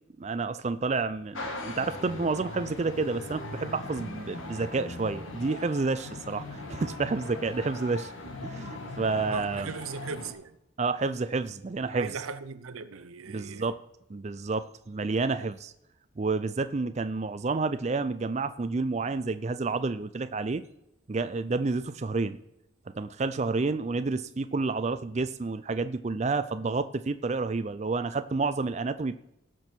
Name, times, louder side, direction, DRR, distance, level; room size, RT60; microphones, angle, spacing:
voice 1, 0.2-8.1 8.4-9.7 10.8-12.1 13.3-13.8 14.1-15.7 16.2-20.6 21.1-22.4 22.9-29.2, right 3 dB, 35° right, 0.4 m, -30 dB
sound 1, 1.3-10.3, left 2 dB, 70° left, 1.7 m, -40 dB
voice 2, 9.3-10.6 11.9-13.7, right 5 dB, 90° right, 0.7 m, -38 dB
17.5 x 6.2 x 4.5 m
head